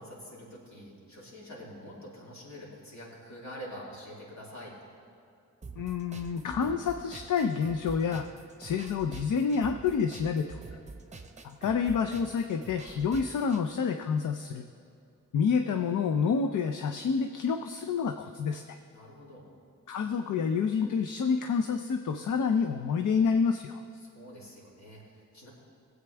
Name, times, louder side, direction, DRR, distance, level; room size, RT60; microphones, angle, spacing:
voice 1, 0.0-4.8 18.9-19.5 24.0-25.5, equal, 65° left, -5 dB, 3.0 m, -46 dB
sound 1, 5.6-13.6, right 4 dB, 25° right, 0.7 m, -46 dB
voice 2, 5.8-8.3 8.6-10.6 11.4-14.7 15.3-18.8 19.9-23.8, left 6 dB, 85° left, 6 dB, 0.6 m, -28 dB
19.0 x 8.1 x 3.4 m, 2.5 s
wide cardioid pair, 120°, 30 cm